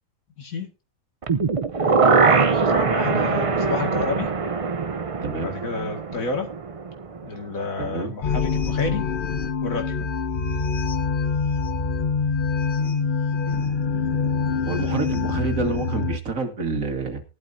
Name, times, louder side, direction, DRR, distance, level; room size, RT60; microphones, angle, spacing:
sound 1, 1.2-7.2 7.6-7.7, right 4 dB, 35° right, 0.5 m, -22 dB
voice 1, 1.7-4.3 5.4-6.5 7.2-9.1 9.6-10.1, left 3 dB, 75° left, 4 dB, 2.4 m, -30 dB
voice 2, 5.2-5.5 7.8-8.1 12.8-13.7 14.7-17.2, right 3 dB, 70° right, 5 dB, 2.2 m, -29 dB
sound 2, 8.2-16.2, left 5 dB, 45° left, 0.8 m, -25 dB
17.5 x 12.0 x 2.7 m, 0.30 s
omnidirectional pair, 1.5 m